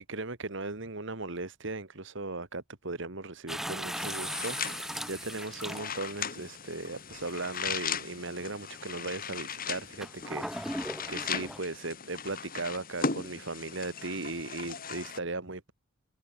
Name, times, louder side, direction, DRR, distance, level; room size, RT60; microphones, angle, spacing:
voice 1, 0.0-15.7, right 3 dB, 60° right, 2.0 m, -38 dB
sound 1, 3.5-6.2 7.1-7.2 10.0-11.6, equal, ahead, 6.4 m, -37 dB
sound 2, 3.9-15.2, left 6 dB, 45° left, 3.1 m, -38 dB
head